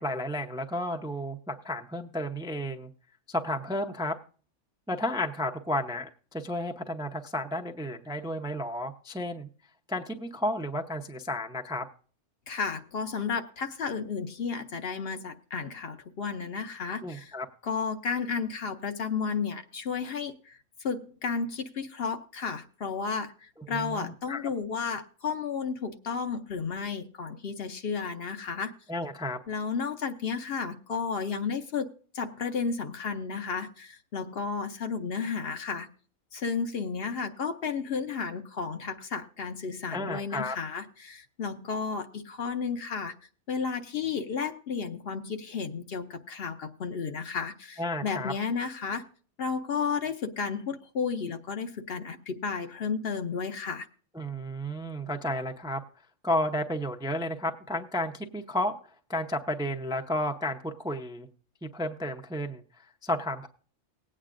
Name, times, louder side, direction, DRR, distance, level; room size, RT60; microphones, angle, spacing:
voice 1, 0.0-2.9 3.3-4.1 4.9-9.5 9.9-11.9 17.0-17.5 23.7-24.5 28.9-29.4 39.9-40.6 47.8-48.3 54.1-55.8 56.2-58.7 59.1-61.3 61.6-63.5, left 1 dB, 5° right, 5 dB, 0.4 m, -32 dB
voice 2, 12.5-17.3 17.6-28.7 29.5-35.9 36.3-43.1 43.5-49.0 49.4-53.9, left 5 dB, 60° left, 8 dB, 0.9 m, -33 dB
19.5 x 8.7 x 2.5 m, 0.42 s
omnidirectional pair, 1.3 m